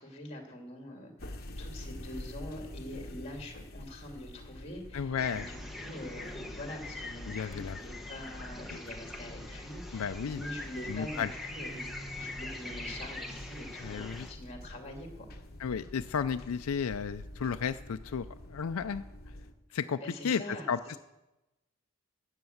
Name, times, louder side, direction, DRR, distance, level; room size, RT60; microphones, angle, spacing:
voice 1, 0.0-11.9 12.2-15.3 20.0-20.7, left 1 dB, 30° left, 3 dB, 2.4 m, -44 dB
sound 1, 1.2-19.5, left 1 dB, 45° left, 1.2 m, -47 dB
voice 2, 4.9-5.5 7.3-7.8 8.7-8.8 9.9-10.4 10.9-11.3 13.8-14.3 15.6-19.0 19.7-21.0, left 6 dB, 80° left, 10 dB, 0.4 m, -33 dB
sound 2, 5.2-14.3, left 2 dB, ahead, 1.1 m, -43 dB
12.5 x 8.9 x 7.9 m, 1.0 s
head